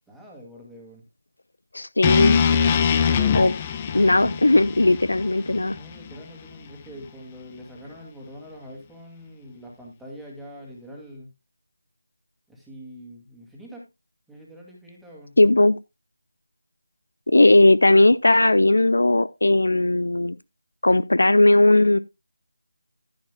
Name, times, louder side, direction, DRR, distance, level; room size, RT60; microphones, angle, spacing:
voice 1, 0.1-1.0 5.5-11.3 12.5-13.8 14.3-15.4, equal, ahead, 2.3 m, -44 dB
voice 2, 1.7-2.4 3.3-3.5 3.9-5.7 15.4-15.8 17.3-20.4 20.8-22.0, left 2 dB, 70° left, 0.6 m, -17 dB
sound 1, 2.0-6.2, left 7 dB, 20° left, 0.8 m, -22 dB
11.5 x 10.5 x 2.2 m
figure-of-eight pair, 160°, 0 cm